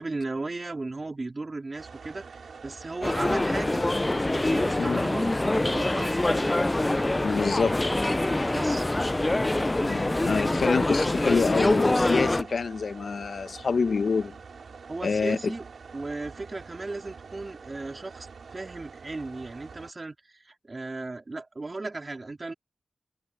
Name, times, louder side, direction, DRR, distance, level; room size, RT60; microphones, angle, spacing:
voice 1, 0.0-3.9 4.3-6.6 8.5-8.8 14.9-15.7 15.9-22.5, right 3 dB, 40° right, 3.9 m, -36 dB
sound 1, 1.7-19.9, right 5 dB, 80° right, 4.2 m, -46 dB
sound 2, 3.0-12.4, left 2 dB, 20° left, 0.3 m, -25 dB
voice 2, 7.2-7.8 9.8-14.4 15.0-15.5, left 5 dB, 75° left, 0.9 m, -26 dB
wide cardioid pair, 85°, 0 cm